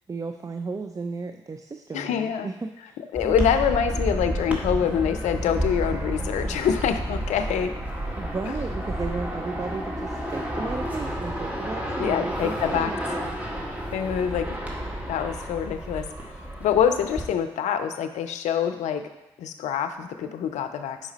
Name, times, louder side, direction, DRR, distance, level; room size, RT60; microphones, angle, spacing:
voice 1, 0.1-3.0 3.2-3.3 8.2-13.0, right 4 dB, 25° right, 7 dB, 0.4 m, -34 dB
voice 2, 1.9-2.5 3.1-7.7 12.0-12.9 13.9-14.6 15.1-16.1 16.6-19.0 19.4-21.1, left 8 dB, 70° left, 8 dB, 0.5 m, -25 dB
sound 1, 3.2-17.3, equal, 10° right, 1.4 m, -31 dB
5.1 x 4.8 x 4.1 m, 1.0 s
hypercardioid pair, 40°, 12 cm